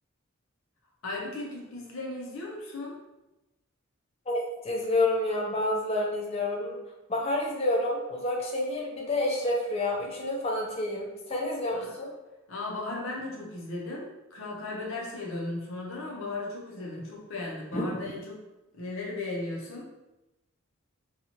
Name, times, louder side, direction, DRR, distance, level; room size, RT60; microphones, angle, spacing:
voice 1, 1.0-3.0 11.7-11.9 12.5-18.4 18.7-19.9, left 2 dB, 70° left, -2 dB, 0.7 m, -36 dB
voice 2, 4.3-6.8 7.1-12.1 17.7-17.8, left 1 dB, 30° left, -1 dB, 0.5 m, -29 dB
2.8 x 2.3 x 2.8 m, 0.99 s
head